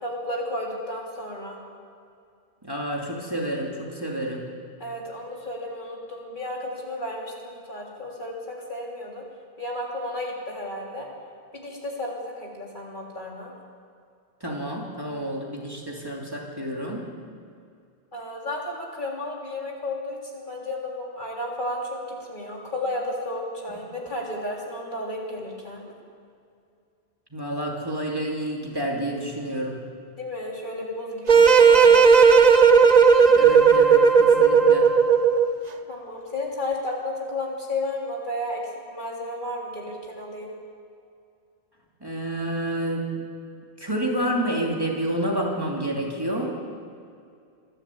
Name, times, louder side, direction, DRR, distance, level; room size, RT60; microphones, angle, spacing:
voice 1, 0.0-1.6 4.8-9.2 9.6-11.1 11.5-13.5 18.1-25.8 30.2-32.1 35.9-40.5, left 1 dB, 45° left, -2 dB, 3.5 m, -33 dB
voice 2, 2.6-4.4 14.4-17.1 27.3-29.8 33.3-34.9 42.0-43.0 43.8-46.6, right 1 dB, 20° right, -2 dB, 2.8 m, -29 dB
sound 1, 31.3-35.6, right 6 dB, 40° right, 1.0 m, -15 dB
25.0 x 12.0 x 8.5 m, 2.4 s
omnidirectional pair, 1.1 m